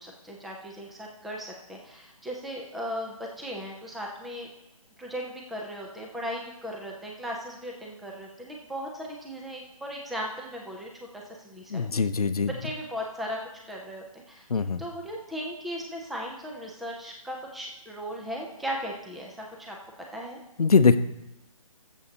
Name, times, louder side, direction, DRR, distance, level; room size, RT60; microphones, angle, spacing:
voice 1, 0.0-4.5 5.0-12.0 12.5-14.5 14.8-19.8 20.1-20.4, equal, ahead, -1 dB, 0.4 m, -37 dB
voice 2, 11.7-12.5 14.5-14.8 20.6-21.0, left 5 dB, 85° left, 12 dB, 0.7 m, -21 dB
21.0 x 7.3 x 2.8 m, 0.91 s
figure-of-eight pair, 150°, 19 cm